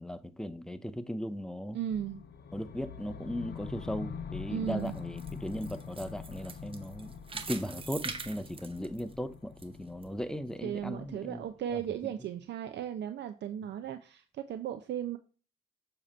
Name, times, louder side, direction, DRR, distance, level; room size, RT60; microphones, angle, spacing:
voice 1, 0.0-1.8 2.5-7.1 7.5-11.4 11.7-11.8, equal, 5° left, 0.5 m, -37 dB
voice 2, 1.7-2.2 4.5-5.0 10.6-15.2, right 10 dB, 60° right, 0.5 m, -36 dB
sound 1, 1.9-12.0, left 7 dB, 55° left, 0.7 m, -45 dB
sound 2, 4.7-9.6 10.0-10.1 10.7-10.8, right 4 dB, 25° right, 0.8 m, -43 dB
7.1 x 2.9 x 5.4 m
cardioid pair, 90°, 20 cm